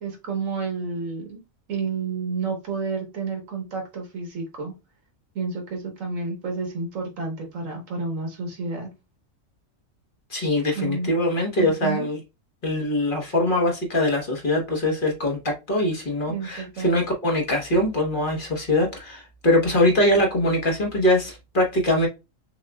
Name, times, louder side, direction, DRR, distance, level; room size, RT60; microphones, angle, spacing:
voice 1, 0.0-1.4 1.7-4.7 5.4-8.9 10.8-11.1 11.6-12.1 16.3-16.9, right 4 dB, 80° right, 1.7 m, -30 dB
voice 2, 10.3-12.2 12.6-22.1, left 1 dB, 40° left, 1.2 m, -22 dB
5.9 x 2.4 x 2.3 m
omnidirectional pair, 1.4 m